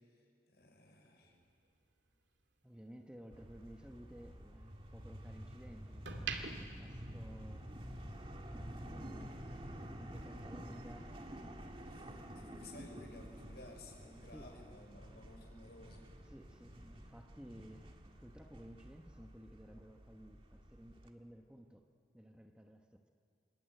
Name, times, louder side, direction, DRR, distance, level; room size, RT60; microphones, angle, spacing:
voice 1, 0.1-1.4 11.8-16.1, left 2 dB, 60° left, 2 dB, 6.1 m, -56 dB
sound 1, 1.2-3.5 3.9-5.4 5.8-7.9 8.2-8.5, right 6 dB, 80° right, 2.3 m, -47 dB
voice 2, 2.6-6.1 6.8-7.7 8.5-9.4 9.8-11.3 12.3-13.1 14.3-14.5 16.2-21.9 22.1-23.1, equal, 5° right, 3 dB, 1.1 m, -55 dB
sound 2, 3.3-21.1, equal, 30° right, 1.7 m, -50 dB
26.5 x 24.0 x 9.2 m, 2.4 s
head